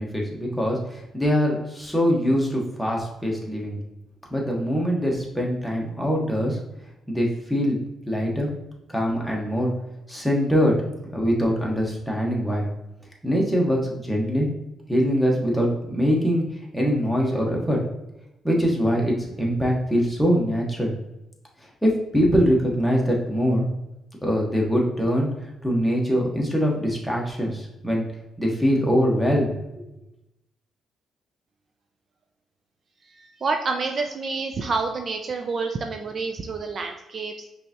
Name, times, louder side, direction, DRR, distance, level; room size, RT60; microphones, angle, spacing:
voice 1, 0.0-3.8 4.3-6.6 7.1-7.8 8.0-8.5 8.9-9.7 10.1-12.7 13.2-14.5 14.9-17.8 18.4-20.9 21.6-23.7 24.2-25.3 25.6-28.1 28.4-29.5, equal, ahead, -2 dB, 1.3 m, -23 dB
voice 2, 33.0-37.3, right 4 dB, 45° right, 4 dB, 0.4 m, -28 dB
5.2 x 3.4 x 2.9 m, 0.92 s
cardioid pair, 90°, 0 cm